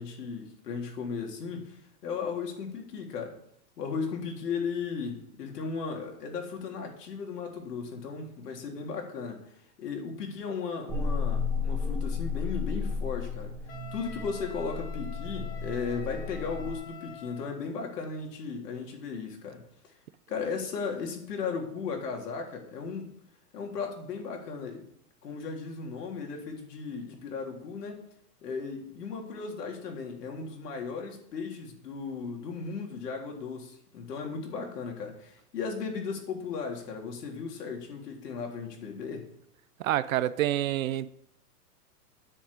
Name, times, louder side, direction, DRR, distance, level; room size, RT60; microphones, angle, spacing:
voice 1, 0.0-3.4 3.8-9.5 9.8-13.5 13.9-19.9 20.3-23.2 23.5-24.8 25.2-28.0 28.4-39.3, left 5 dB, 80° left, 3.7 m, -36 dB
sound 1, 10.9-16.7, left 5 dB, 5° right, 0.6 m, -33 dB
Wind instrument woodwind instrument, 13.7-17.6, left 6 dB, 20° left, 1.5 m, -47 dB
voice 2, 39.8-41.1, right 13 dB, 60° right, 0.6 m, -27 dB
10.0 x 6.3 x 8.3 m
supercardioid pair, 160°, 47 cm